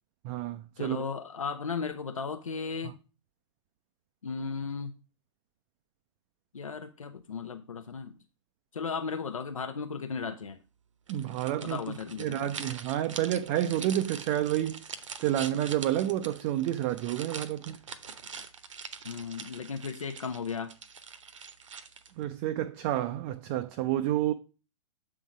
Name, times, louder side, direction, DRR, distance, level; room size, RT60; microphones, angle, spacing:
voice 1, 0.2-1.0 2.8-2.9 11.1-17.8 22.2-24.3, right 12 dB, 25° right, 0.4 m, -30 dB
voice 2, 0.8-3.0 4.2-4.9 6.5-8.1 8.7-10.6 11.6-12.5 19.0-20.7, left 5 dB, 75° left, 0.7 m, -35 dB
sound 1, 11.1-22.3, right 6 dB, 65° right, 0.8 m, -44 dB
7.5 x 3.8 x 4.9 m
figure-of-eight pair, 110°, 17 cm